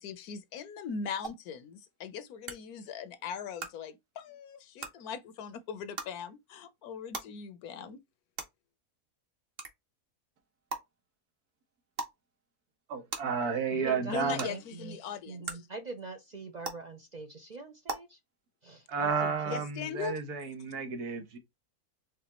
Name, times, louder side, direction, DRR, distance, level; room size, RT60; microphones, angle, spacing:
voice 1, 0.0-8.0 14.1-15.6 19.5-20.2, left 6 dB, 80° left, 1.2 m, -40 dB
sound 1, 1.2-1.3 2.5-2.6 3.6-3.7 4.8-4.9 6.0-6.1 7.1-7.2 8.4-8.5 9.6-9.7 10.7-10.8 11.9-12.1 13.1-13.2 14.4-14.5 15.4-15.5 16.6-16.7 17.9-18.0, right 3 dB, 45° right, 1.2 m, -36 dB
voice 2, 12.9-14.5 18.9-21.4, right 5 dB, 90° right, 1.7 m, -32 dB
voice 3, 13.7-15.0 15.3-18.2 18.6-19.6, right 3 dB, 60° right, 0.4 m, -44 dB
4.9 x 3.5 x 2.9 m
omnidirectional pair, 1.6 m